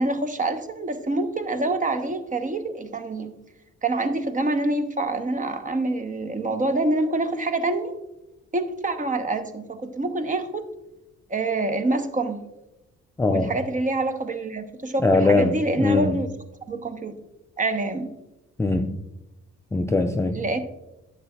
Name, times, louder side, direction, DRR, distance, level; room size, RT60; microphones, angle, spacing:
voice 1, 0.0-3.3 3.8-7.9 8.5-10.6 11.3-12.4 13.3-16.3 16.7-17.2 17.6-18.1 20.3-20.6, right 2 dB, 25° right, 8 dB, 0.8 m, -26 dB
voice 2, 13.2-13.6 15.0-16.2 18.6-19.0 19.7-20.4, left 3 dB, 10° left, 6 dB, 0.3 m, -22 dB
10.5 x 7.0 x 2.2 m, 0.98 s
cardioid pair, 90°, 30 cm